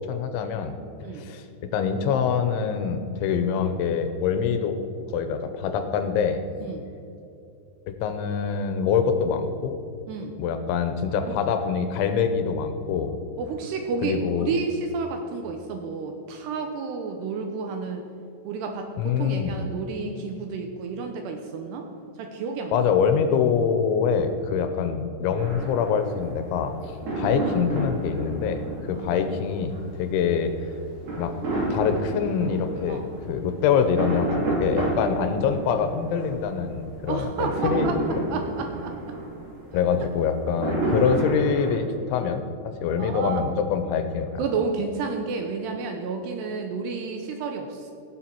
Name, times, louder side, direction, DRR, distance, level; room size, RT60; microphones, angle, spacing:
voice 1, 0.1-0.8 1.2-1.5 1.7-4.8 5.1-6.4 7.9-9.8 10.4-13.2 14.0-14.5 19.0-19.6 22.7-30.5 31.2-31.3 31.7-37.9 39.7-44.4, left 6 dB, 85° left, 8 dB, 3.1 m, -25 dB
voice 2, 13.4-18.1 18.4-21.9 22.2-22.9 28.9-29.3 32.9-33.1 37.1-38.0 38.3-39.2 40.0-40.1 41.1-41.2 42.7-43.5 44.4-47.9, right 5 dB, 80° right, 4 dB, 2.6 m, -31 dB
sound 1, 25.4-41.7, right 2 dB, 60° right, 5.3 m, -30 dB
17.0 x 7.5 x 4.6 m, 2.7 s
omnidirectional pair, 5.4 m